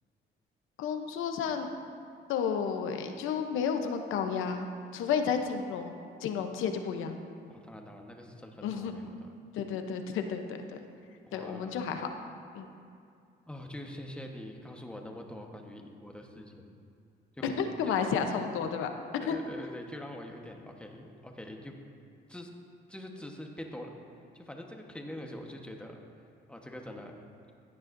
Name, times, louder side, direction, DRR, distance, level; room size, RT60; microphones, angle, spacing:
voice 1, 0.8-1.7 2.3-5.9 6.2-7.2 8.6-9.0 9.5-10.8 11.3-12.1 12.5-12.7 17.4-18.9 19.2-19.4, left 6 dB, 90° left, 5 dB, 0.8 m, -32 dB
voice 2, 7.5-9.1 11.3-11.9 13.5-16.8 17.4-17.5 18.0-18.3 19.2-21.7 22.3-22.5 22.9-23.9 24.3-26.0 26.5-27.1, left 1 dB, 5° left, 2 dB, 1.1 m, -44 dB
15.0 x 9.5 x 2.6 m, 2.4 s
cardioid pair, 90°, 20 cm